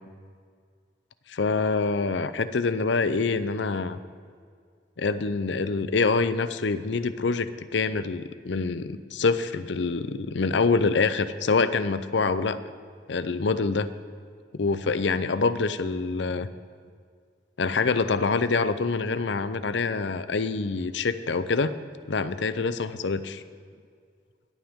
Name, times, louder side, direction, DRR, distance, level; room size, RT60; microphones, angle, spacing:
voice 1, 1.3-4.0 5.0-12.6 13.1-13.9 14.5-16.5 17.6-21.7 22.1-23.4, left 4 dB, 70° left, 13 dB, 0.6 m, -25 dB
21.0 x 8.9 x 3.7 m, 2.1 s
head